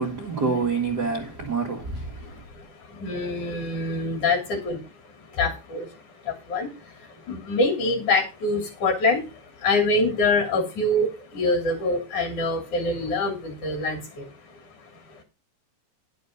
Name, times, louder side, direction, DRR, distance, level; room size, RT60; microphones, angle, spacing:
voice 1, 0.0-2.4, right 4 dB, 40° right, 1.5 m, -27 dB
voice 2, 3.0-4.8 5.4-5.8 6.3-6.7 7.3-9.2 9.6-11.1 11.3-14.2, left 2 dB, 55° left, 4.4 m, -24 dB
11.0 x 7.3 x 5.3 m
omnidirectional pair, 4.3 m